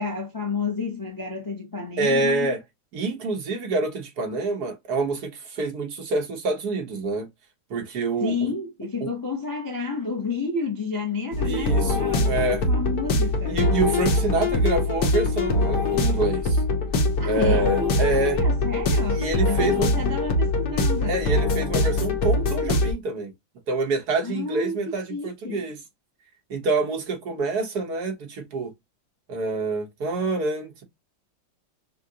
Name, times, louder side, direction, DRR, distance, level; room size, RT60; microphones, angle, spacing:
voice 1, 0.0-2.5 8.2-13.6 17.2-21.2 24.2-25.6, left 3 dB, 35° left, 0.3 m, -30 dB
voice 2, 2.0-2.6 2.9-7.3 7.7-8.5 9.0-9.1 11.4-12.6 13.5-16.6 17.3-18.4 19.1-19.9 21.1-23.3 23.7-25.8 26.5-28.7 29.3-30.8, right 3 dB, 60° right, 1.6 m, -27 dB
sound 1, 11.3-22.9, left 2 dB, 65° left, 1.5 m, -23 dB
6.4 x 2.1 x 2.8 m
omnidirectional pair, 2.0 m